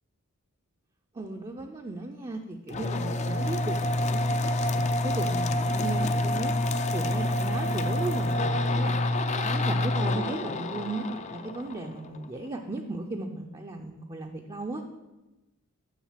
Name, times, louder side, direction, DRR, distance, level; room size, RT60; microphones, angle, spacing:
voice 1, 1.1-6.5 6.9-9.0 9.3-14.8, right 2 dB, 20° right, 2 dB, 0.5 m, -36 dB
sound 1, 2.7-12.3, left 1 dB, 30° left, 0.5 m, -27 dB
7.2 x 6.6 x 7.4 m, 1.1 s
head